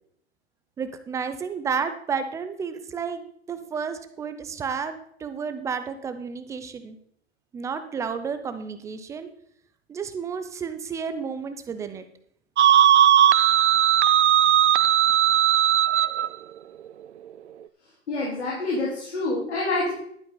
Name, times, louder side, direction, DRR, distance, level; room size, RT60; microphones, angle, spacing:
voice 1, 0.8-3.2 3.5-7.0 7.5-9.3 9.9-12.0, right 6 dB, 10° right, 10 dB, 0.5 m, -31 dB
sound 1, 12.6-16.3, right 10 dB, 85° right, 0.5 m, -18 dB
voice 2, 18.1-19.9, left 2 dB, 75° left, -4 dB, 4.0 m, -27 dB
11.5 x 9.2 x 4.0 m, 0.66 s
hypercardioid pair, 130°, 33 cm